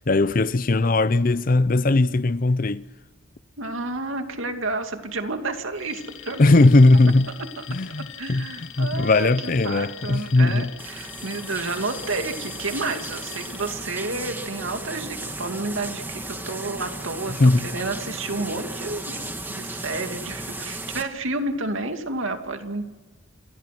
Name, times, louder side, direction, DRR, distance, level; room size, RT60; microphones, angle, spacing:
voice 1, 0.1-2.8 6.4-7.3 7.7-8.5 8.8-10.7 17.3-17.7, left 2 dB, 45° left, 0.6 m, -18 dB
voice 2, 3.6-6.7 7.6-7.7 8.2-22.8, right 2 dB, 80° right, 2.5 m, -30 dB
Alarm, 5.7-13.8, left 11 dB, 80° left, 1.9 m, -42 dB
sound 1, 10.8-21.0, right 2 dB, 10° right, 1.9 m, -35 dB
28.5 x 21.5 x 6.1 m
head